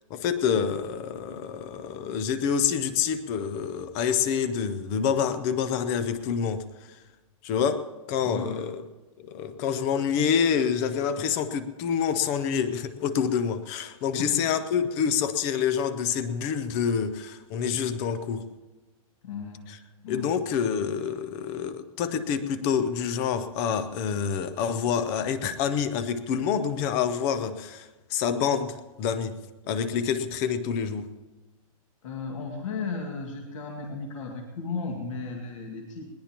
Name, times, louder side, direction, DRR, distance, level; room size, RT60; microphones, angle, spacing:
voice 1, 0.1-7.0 7.4-8.8 9.2-18.5 20.1-29.4 29.7-31.1, left 7 dB, 15° left, 13 dB, 0.4 m, -27 dB
voice 2, 8.2-8.6 14.2-14.5 19.2-20.3 32.0-36.0, left 4 dB, 60° left, 1 dB, 2.0 m, -35 dB
20.5 x 19.5 x 2.9 m, 1.2 s
hypercardioid pair, 175°, 18 cm